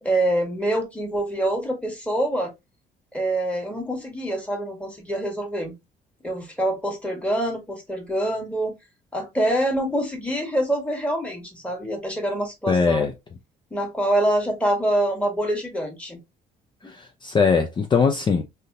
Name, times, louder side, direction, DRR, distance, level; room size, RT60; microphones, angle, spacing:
voice 1, 0.0-2.5 3.1-5.7 6.2-8.7 9.1-13.1 13.7-16.2 16.8-16.9, right 1 dB, 5° left, 1.4 m, -25 dB
voice 2, 12.7-13.1 16.9-18.4, left 5 dB, 25° left, 0.5 m, -21 dB
3.5 x 2.9 x 2.5 m
cardioid pair, 110°, 17 cm